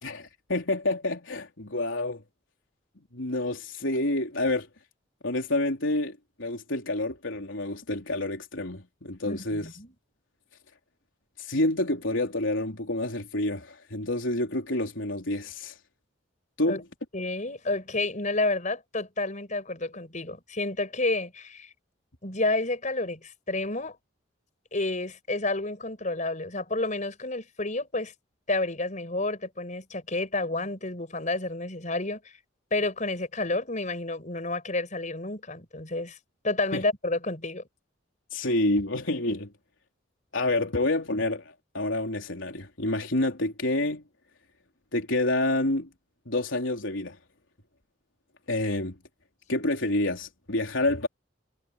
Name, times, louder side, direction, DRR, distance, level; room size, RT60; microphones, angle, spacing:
voice 1, 0.0-2.2 3.1-4.7 5.2-9.7 11.4-15.8 16.6-16.8 36.7-36.8 38.3-39.5 40.3-44.0 44.9-45.9 46.3-47.2 48.5-49.0 49.5-51.1, left 2 dB, 75° left, 3.7 m, -28 dB
voice 2, 9.3-9.9 16.7-16.8 17.1-21.7 22.2-24.0 24.7-28.1 28.5-32.2 32.7-36.2 36.4-37.6, left 2 dB, 40° left, 5.3 m, -30 dB
head